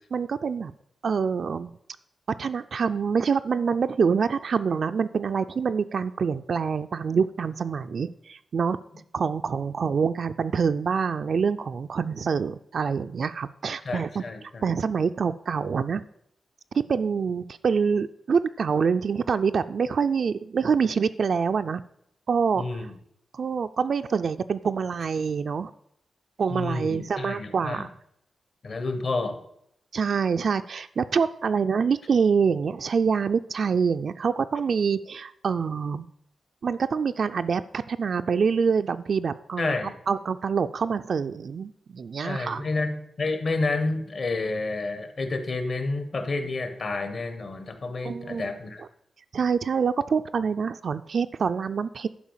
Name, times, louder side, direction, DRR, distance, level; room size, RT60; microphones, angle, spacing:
voice 1, 0.1-0.7 1.0-1.7 2.4-8.8 9.1-14.2 14.6-16.0 16.7-21.8 22.3-22.9 23.3-25.7 26.4-27.9 29.9-36.1 36.6-39.8 40.1-42.6 48.0-48.5 49.3-52.1, right 6 dB, 55° right, 9 dB, 0.3 m, -26 dB
voice 2, 13.8-14.7 22.6-22.9 26.5-27.9 28.6-29.4 39.6-39.9 42.2-48.8, left 3 dB, 50° left, 8 dB, 1.3 m, -30 dB
11.0 x 4.7 x 7.3 m, 0.74 s
wide cardioid pair, 145°, 0 cm